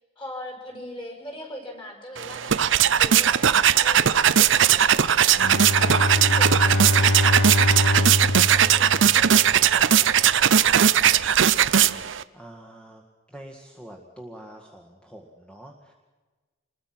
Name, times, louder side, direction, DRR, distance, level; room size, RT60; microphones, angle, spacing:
voice 1, 0.2-5.2 5.7-10.9, left 1 dB, 25° left, 1 dB, 5.7 m, -41 dB
sound 1, 2.2-12.2, right 9 dB, 85° right, 0.7 m, -19 dB
Bowed string instrument, 5.4-9.7, left 1 dB, 80° left, 1.0 m, -24 dB
voice 2, 12.3-13.0 13.3-15.9, right 1 dB, 5° left, 1 dB, 1.8 m, -45 dB
27.0 x 21.5 x 6.0 m, 1.3 s
head